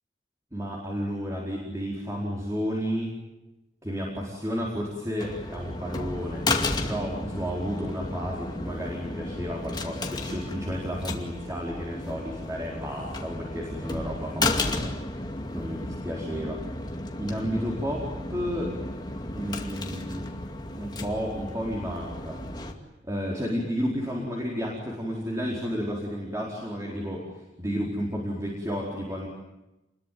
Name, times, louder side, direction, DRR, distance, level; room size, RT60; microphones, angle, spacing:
voice 1, 0.5-3.1 3.8-15.2 15.5-16.6 17.2-18.7 19.3-20.3 20.7-22.4 23.0-29.3, equal, 15° right, -2 dB, 4.5 m, -32 dB
sound 1, 5.2-22.7, left 2 dB, 25° left, 2.4 m, -33 dB
28.5 x 22.0 x 9.4 m, 0.99 s
head